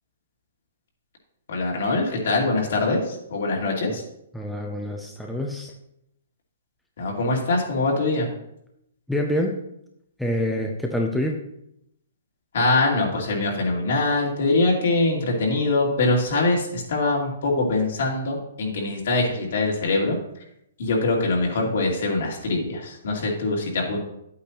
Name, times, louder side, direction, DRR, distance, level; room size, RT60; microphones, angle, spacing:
voice 1, 1.5-4.0 7.0-8.3 12.5-20.1 20.8-24.0, left 2 dB, 60° left, -1 dB, 2.7 m, -23 dB
voice 2, 4.3-5.7 9.1-9.5 10.2-11.4, left 1 dB, ahead, 0 dB, 0.5 m, -26 dB
10.5 x 8.4 x 3.0 m, 0.78 s
hypercardioid pair, 170°, 0 cm